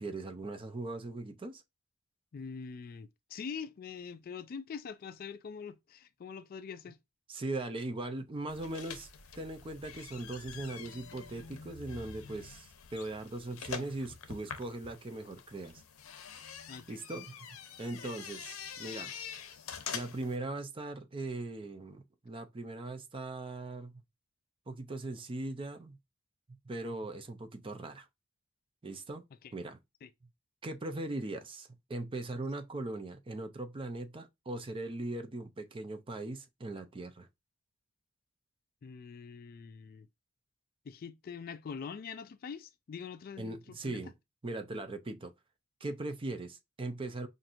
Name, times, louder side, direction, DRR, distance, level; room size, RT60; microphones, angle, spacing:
voice 1, 0.0-1.6 7.3-9.1 9.4-15.8 16.9-17.3 17.8-19.2 19.9-24.0 24.7-26.0 26.5-28.1 28.8-29.2 29.5-29.8 30.6-37.3 43.4-44.1 44.4-45.3 45.8-47.3, right 2 dB, 25° right, 0.5 m, -39 dB
voice 2, 2.3-7.0 16.7-17.0 18.0-18.1 30.0-30.1 38.8-40.1 40.9-44.0, left 6 dB, 45° left, 0.3 m, -44 dB
sound 1, 8.5-20.4, left 7 dB, 75° left, 0.6 m, -46 dB
5.7 x 2.6 x 2.5 m
head